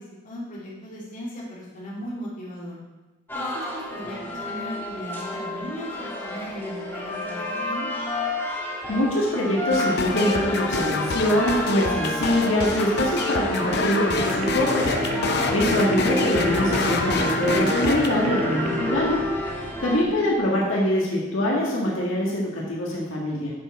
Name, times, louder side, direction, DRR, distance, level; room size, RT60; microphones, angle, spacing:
voice 1, 0.0-2.8 3.3-7.9 19.6-20.2, equal, 40° left, -7 dB, 2.7 m, -37 dB
sound 1, 3.3-20.0, left 1 dB, 10° left, 1.3 m, -31 dB
voice 2, 8.9-14.9 15.5-19.3 19.8-23.5, left 1 dB, 85° left, -4 dB, 1.8 m, -24 dB
sound 2, 9.7-18.1, left 3 dB, 55° left, 0.7 m, -27 dB
sound 3, 13.9-20.2, right 1 dB, 40° right, 1.1 m, -29 dB
8.7 x 6.3 x 4.2 m, 1.1 s
head